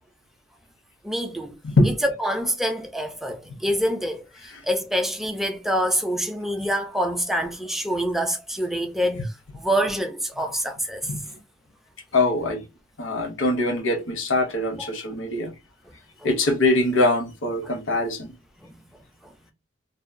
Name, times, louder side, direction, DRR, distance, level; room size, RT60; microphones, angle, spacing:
voice 1, 1.0-1.6 2.0-11.1 14.8-14.9 18.6-18.8 19.2-19.3, equal, ahead, 0.3 m, -26 dB
voice 2, 12.1-12.6 13.0-15.5 16.2-18.3, left 2 dB, 70° left, 0.7 m, -23 dB
2.7 x 2.1 x 2.4 m
head